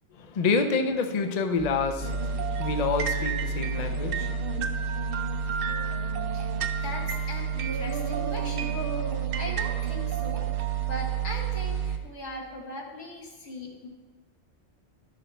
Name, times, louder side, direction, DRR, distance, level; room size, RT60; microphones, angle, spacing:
voice 1, 0.1-4.3, left 4 dB, 45° left, 0.6 m, -28 dB
sound 1, 1.6-11.7, right 2 dB, 5° right, 0.3 m, -39 dB
sound 2, 2.0-12.0, right 7 dB, 60° right, 0.8 m, -28 dB
voice 2, 6.8-13.9, left 1 dB, 85° left, 1.8 m, -39 dB
12.0 x 6.3 x 3.4 m
omnidirectional pair, 1.2 m